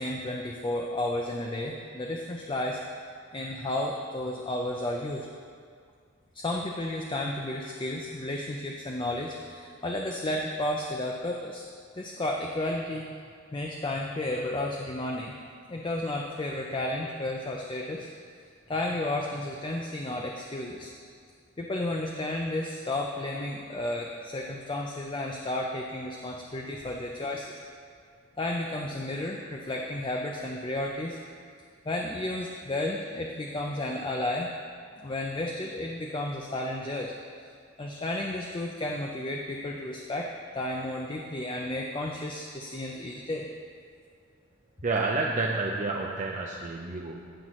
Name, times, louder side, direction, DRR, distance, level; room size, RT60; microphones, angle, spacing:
voice 1, 0.0-2.8 3.3-5.3 6.3-11.6 11.9-13.0 13.5-15.4 15.7-18.1 18.7-20.9 21.6-27.6 28.4-31.2 31.9-34.5 35.0-37.1 37.8-40.3 40.5-43.5, left 1 dB, 25° left, 0 dB, 0.5 m, -32 dB
voice 2, 44.8-47.3, right 3 dB, 40° right, -1 dB, 0.5 m, -29 dB
15.5 x 5.8 x 3.1 m, 2.2 s
head